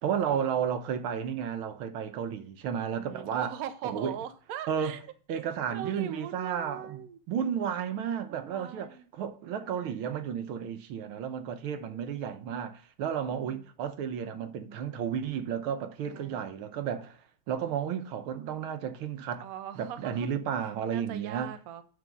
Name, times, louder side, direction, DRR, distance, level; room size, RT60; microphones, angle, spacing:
voice 1, 0.0-3.6 3.8-4.1 4.7-5.0 5.3-7.0 7.3-17.2 17.5-19.4 19.8-21.5, right 8 dB, 85° right, 1.8 m, -32 dB
voice 2, 2.9-5.0 5.3-5.4 5.7-7.2 8.3-9.1 11.8-12.2 13.3-13.7 16.0-16.7 19.4-20.3 20.9-21.8, right 9 dB, 60° right, 1.1 m, -41 dB
11.0 x 3.8 x 5.3 m
omnidirectional pair, 2.3 m